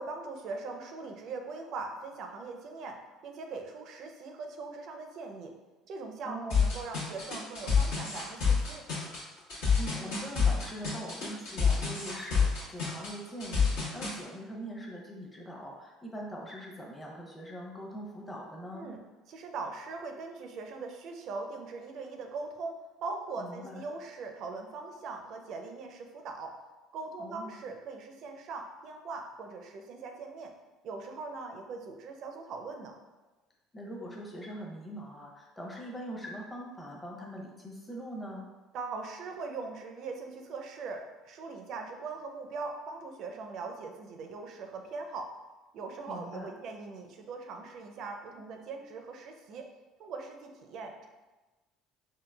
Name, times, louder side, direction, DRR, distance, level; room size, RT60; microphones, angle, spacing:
voice 1, 0.0-5.5 5.9-8.8 18.7-19.0 19.3-26.5 26.9-30.5 30.8-32.9 38.7-45.3 45.7-49.7 50.0-51.1, right 4 dB, 60° right, 4 dB, 0.4 m, -41 dB
voice 2, 6.2-6.6 9.8-18.9 23.4-23.9 27.2-27.6 33.7-38.5 46.1-46.5, equal, 15° left, -2 dB, 0.7 m, -42 dB
sound 1, 6.5-14.1, left 5 dB, 75° left, 1.1 m, -27 dB
3.7 x 2.1 x 2.3 m, 1.2 s
hypercardioid pair, 75°, 0 cm